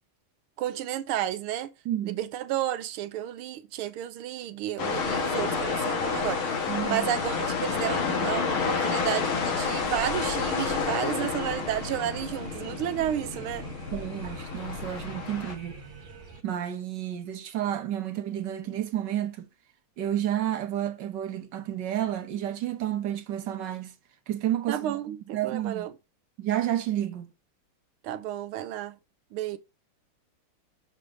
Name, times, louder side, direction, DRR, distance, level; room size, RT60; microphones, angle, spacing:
voice 1, 0.6-1.7 2.0-13.7 24.7-25.9 28.0-29.0 29.3-29.6, right 11 dB, 85° right, 1.6 m, -32 dB
voice 2, 1.8-2.2 6.7-7.1 13.9-15.8 16.4-19.5 20.0-23.9 24.3-25.9 26.4-27.3, right 11 dB, 65° right, 1.4 m, -31 dB
sound 1, 4.8-15.5, left 5 dB, 70° left, 2.3 m, -30 dB
sound 2, 9.7-16.4, right 3 dB, 40° right, 1.5 m, -45 dB
6.9 x 3.4 x 6.1 m
omnidirectional pair, 2.3 m